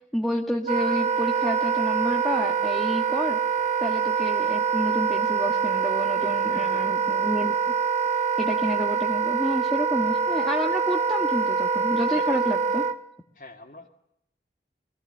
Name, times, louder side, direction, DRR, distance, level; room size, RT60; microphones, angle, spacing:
voice 1, 0.1-3.4 3.8-7.5 8.4-12.8, equal, ahead, -1 dB, 1.5 m, -29 dB
Wind instrument woodwind instrument, 0.7-13.0, right 6 dB, 40° right, 1.3 m, -25 dB
voice 2, 6.2-6.9 12.0-12.6 13.3-13.9, left 2 dB, 45° left, -2 dB, 2.2 m, -44 dB
24.0 x 17.5 x 9.2 m, 0.78 s
head